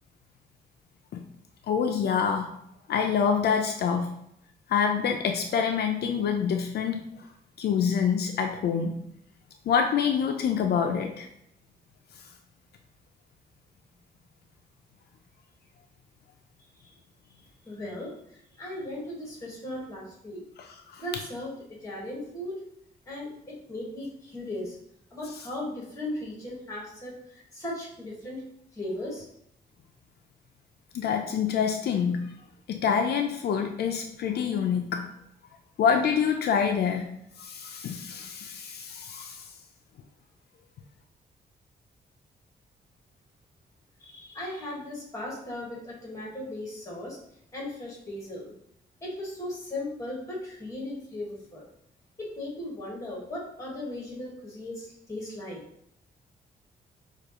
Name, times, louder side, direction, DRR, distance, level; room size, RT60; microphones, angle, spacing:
voice 1, 1.7-2.5 2.9-4.1 4.7-7.2 7.6-9.0 9.7-11.3 20.6-20.7 20.9-21.0 30.9-32.3 32.7-35.0 35.8-37.1 37.4-39.4, left 7 dB, 75° left, 4 dB, 0.5 m, -26 dB
voice 2, 17.6-18.1 18.6-20.4 21.0-22.6 23.1-24.8 25.1-28.4 28.7-29.3 44.0-47.2 47.5-48.5 49.0-51.6 52.2-55.6, left 1 dB, 20° left, -4 dB, 1.5 m, -37 dB
6.6 x 2.4 x 3.0 m, 0.73 s
wide cardioid pair, 175°, 17 cm